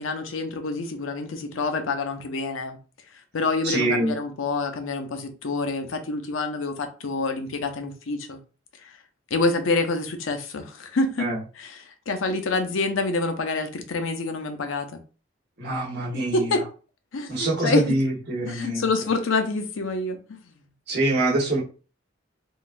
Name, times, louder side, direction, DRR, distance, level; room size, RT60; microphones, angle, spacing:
voice 1, 0.0-2.8 3.3-8.4 8.8-9.0 9.3-11.3 11.6-15.0 16.1-16.6 17.1-17.8 18.5-20.5, left 3 dB, 85° left, 0.6 m, -27 dB
voice 2, 3.6-4.1 11.2-11.4 15.6-16.5 17.3-18.8 20.9-21.6, right 2 dB, 55° right, 1.1 m, -24 dB
3.7 x 2.4 x 2.5 m
head